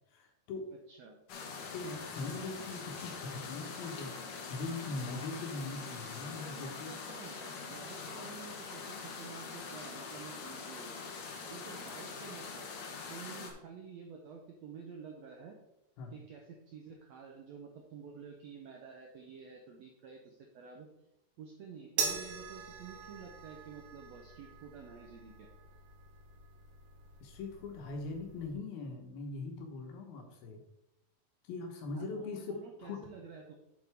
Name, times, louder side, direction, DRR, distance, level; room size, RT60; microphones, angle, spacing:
voice 1, 0.1-0.7 1.7-4.1 4.5-6.9 16.0-16.2 27.2-30.6 31.4-33.0, left 3 dB, 85° left, 3 dB, 3.2 m, -41 dB
sound 1, 1.3-13.5, left 5 dB, 70° left, 2.8 m, -44 dB
voice 2, 6.3-11.0 11.5-12.7 13.1-15.5 16.1-20.9 21.4-25.5 31.9-33.6, right 6 dB, 80° right, 1 dB, 1.5 m, -50 dB
sound 2, 22.0-28.5, right 5 dB, 60° right, 2.3 m, -42 dB
7.8 x 7.6 x 3.5 m, 0.87 s
omnidirectional pair, 4.1 m